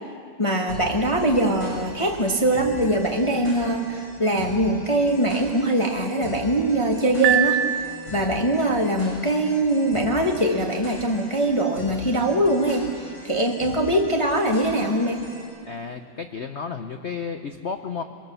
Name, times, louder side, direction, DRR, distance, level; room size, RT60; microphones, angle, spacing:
voice 1, 0.4-7.6 8.1-15.3, right 1 dB, 20° left, 1 dB, 1.1 m, -22 dB
sound 1, 0.7-15.4, left 1 dB, 45° left, 8.1 m, -40 dB
Piano, 7.2-8.5, right 11 dB, 75° right, 1.6 m, -24 dB
voice 2, 15.6-18.0, left 5 dB, 80° left, 7 dB, 0.6 m, -32 dB
22.5 x 22.5 x 6.9 m, 2.3 s
omnidirectional pair, 2.4 m